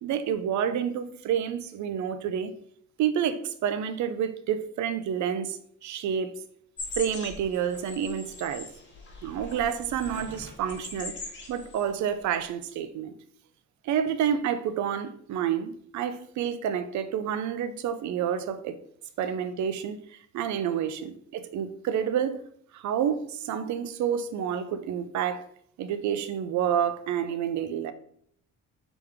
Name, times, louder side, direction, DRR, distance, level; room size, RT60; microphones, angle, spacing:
voice 1, 0.0-2.5 3.0-6.4 6.9-8.7 9.2-11.2 11.5-13.1 13.8-18.8 19.2-20.0 20.3-22.4 22.7-25.4 25.8-27.9, right 8 dB, 70° right, 0.5 m, -29 dB
sound 1, 6.8-11.9 12.2-12.4, left 2 dB, 40° left, 1.4 m, -41 dB
4.9 x 3.0 x 3.5 m
cardioid pair, 90°, 30 cm